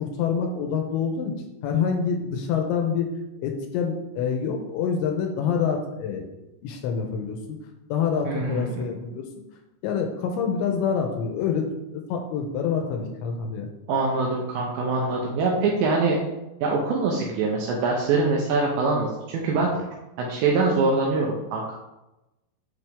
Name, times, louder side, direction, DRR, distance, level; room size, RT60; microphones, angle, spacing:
voice 1, 0.0-1.3 1.6-3.1 3.4-6.3 6.6-7.6 7.9-9.2 9.8-13.7, left 6 dB, 80° left, 3 dB, 2.8 m, -26 dB
voice 2, 8.2-8.8 13.9-16.2 16.6-19.7 20.2-21.7, right 3 dB, 75° right, -2 dB, 2.8 m, -24 dB
10.0 x 3.5 x 3.5 m, 0.97 s
omnidirectional pair, 5.6 m